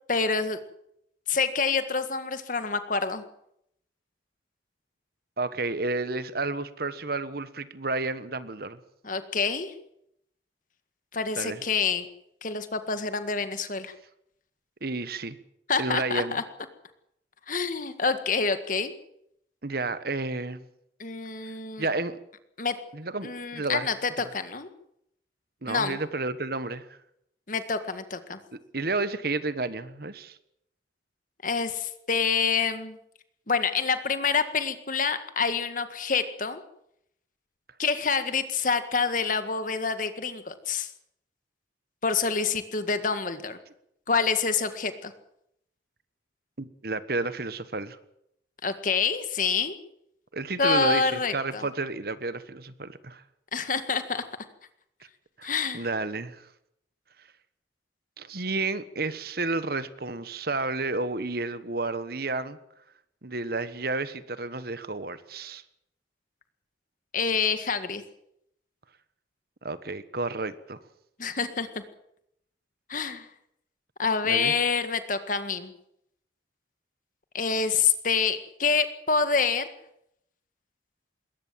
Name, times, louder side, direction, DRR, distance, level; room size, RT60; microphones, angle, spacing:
voice 1, 0.1-0.6 1.3-3.2 9.0-9.7 11.1-12.1 12.4-13.9 15.7-16.4 17.5-18.9 21.0-21.9 22.6-22.7 23.2-24.7 25.6-26.0 27.5-28.4 31.4-33.0 33.5-36.6 37.8-40.9 42.0-43.6 44.1-45.1 48.6-49.8 50.6-51.6 53.5-54.2 55.4-55.9 67.1-68.0 71.2-71.8 72.9-73.3 74.0-75.7 77.3-79.7, left 5 dB, 45° left, 10 dB, 1.8 m, -27 dB
voice 2, 5.4-8.8 11.4-11.6 14.8-15.4 15.8-16.4 19.6-20.6 21.4-21.5 21.8-22.2 22.9-23.9 25.6-27.0 28.7-30.4 46.6-48.0 50.3-53.2 55.4-55.5 55.7-56.5 58.2-62.6 63.2-65.6 69.6-70.8 74.2-74.5, right 3 dB, 55° right, 13 dB, 1.3 m, -31 dB
21.5 x 18.5 x 7.6 m, 0.76 s
head